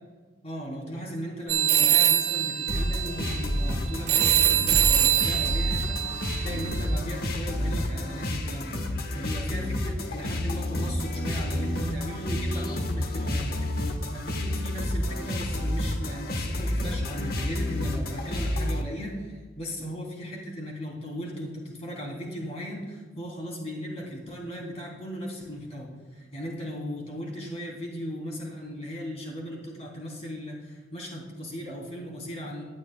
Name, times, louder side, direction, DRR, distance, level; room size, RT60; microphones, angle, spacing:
voice 1, 0.4-32.6, equal, 35° left, -2 dB, 3.2 m, -37 dB
sound 1, 1.5-7.0, right 10 dB, 35° right, 1.1 m, -24 dB
sound 2, 2.7-18.8, left 1 dB, 60° left, 1.2 m, -29 dB
18.0 x 10.5 x 2.2 m, 1.5 s
head